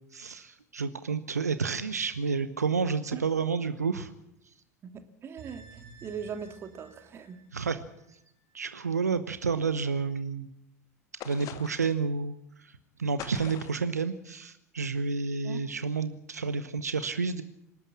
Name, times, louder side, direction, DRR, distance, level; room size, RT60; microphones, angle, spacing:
voice 1, 0.1-4.1 7.5-7.8 8.5-10.5 11.2-17.4, right 5 dB, 80° right, 12 dB, 0.9 m, -30 dB
voice 2, 4.8-7.4 15.4-15.6, right 7 dB, 30° right, 7 dB, 2.3 m, -40 dB
sound 1, 5.4-8.6 8.9-9.0, right 5 dB, 50° right, 4.5 m, -53 dB
sound 2, 11.2-12.0 13.2-13.9, left 11 dB, 40° left, 1.5 m, -43 dB
26.0 x 12.0 x 8.7 m, 0.82 s
figure-of-eight pair, 75°, 9 cm